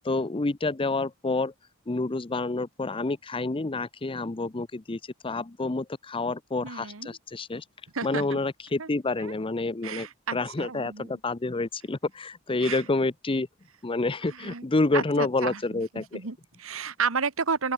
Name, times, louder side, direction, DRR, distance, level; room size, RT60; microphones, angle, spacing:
voice 1, 0.0-1.5 1.9-7.6 8.0-13.5 13.8-16.2, left 3 dB, 25° left, 0.7 m, -28 dB
voice 2, 6.6-7.2 7.9-8.4 8.8-8.9 9.2-9.3 9.8-11.2 12.6-12.8 14.3-14.6 14.9-17.7, right 5 dB, 75° right, 1.4 m, -32 dB
open air
head